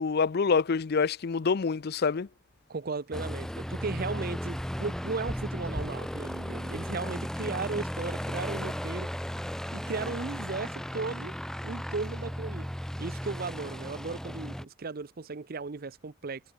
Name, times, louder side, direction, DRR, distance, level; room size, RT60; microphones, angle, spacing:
voice 1, 0.0-2.3, left 5 dB, 55° left, 0.5 m, -26 dB
voice 2, 2.7-9.1 9.7-11.3 11.6-12.7 13.0-16.4, right 4 dB, 50° right, 0.7 m, -36 dB
Aircraft, 3.1-14.6, equal, 5° left, 0.7 m, -35 dB
head